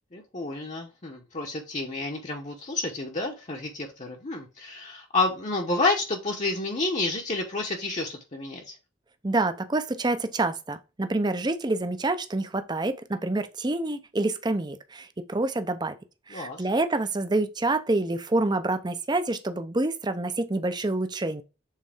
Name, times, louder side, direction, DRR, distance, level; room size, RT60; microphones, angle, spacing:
voice 1, 0.1-8.8 16.3-16.6, left 3 dB, 35° left, 0.9 m, -30 dB
voice 2, 9.2-16.0 16.3-21.4, right 2 dB, 20° right, 0.6 m, -27 dB
7.4 x 3.9 x 3.4 m
head